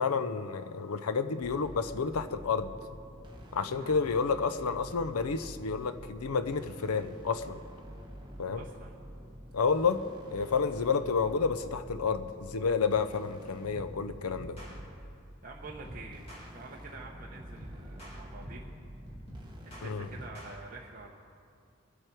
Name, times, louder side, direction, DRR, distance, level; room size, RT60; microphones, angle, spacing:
voice 1, 0.0-2.7 3.5-7.6 8.4-8.6 9.5-10.0 10.3-14.6 19.8-20.1, left 5 dB, 85° left, 11 dB, 0.6 m, -30 dB
sound 1, 1.4-20.3, equal, 20° right, 1.2 m, -48 dB
voice 2, 8.5-8.9 10.4-10.5 15.4-18.8 19.8-21.1, right 3 dB, 40° right, -2 dB, 0.8 m, -47 dB
sound 2, 13.7-14.0 14.3-14.8 15.6-16.5 17.3-18.7 19.1-20.6, equal, 25° left, 2.4 m, -47 dB
22.5 x 7.9 x 4.5 m, 2.4 s
head